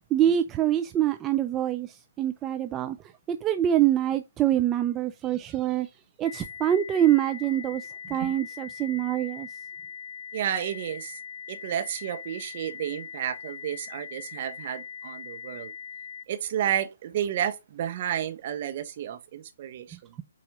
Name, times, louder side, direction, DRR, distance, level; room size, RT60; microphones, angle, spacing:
voice 1, 0.1-3.0 3.3-5.9 6.2-9.5 19.9-20.2, right 11 dB, 15° right, 0.5 m, -25 dB
sound 1, 6.2-16.2, left 7 dB, 65° left, 0.7 m, -41 dB
voice 2, 10.3-11.1 11.5-15.7 16.3-20.2, right 10 dB, 40° right, 1.4 m, -31 dB
8.6 x 4.2 x 4.0 m
figure-of-eight pair, 140°, 0 cm